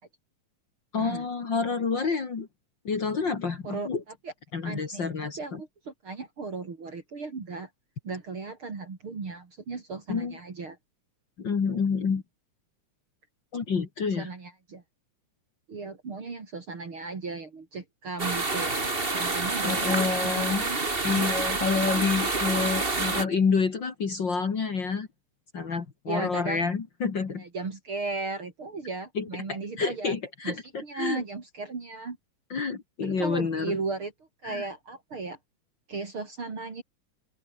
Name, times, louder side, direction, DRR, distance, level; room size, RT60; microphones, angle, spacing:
voice 1, 0.9-2.5 2.8-4.0 4.5-5.6 10.1-10.3 11.4-12.2 13.5-14.3 19.6-20.7 21.0-25.1 25.5-27.4 29.1-31.2 32.5-33.8 34.4-34.7, left 5 dB, 40° left, 2.5 m, -28 dB
voice 2, 4.6-7.7 8.0-10.8 14.2-14.8 15.7-18.8 19.1-20.8 22.3-22.4 26.1-26.7 27.4-30.1 30.4-32.2 33.0-34.1 34.4-35.4 35.9-36.8, right 4 dB, 45° right, 4.0 m, -36 dB
sound 1, 18.2-23.2, right 3 dB, 20° right, 2.3 m, -28 dB
open air
omnidirectional pair, 3.4 m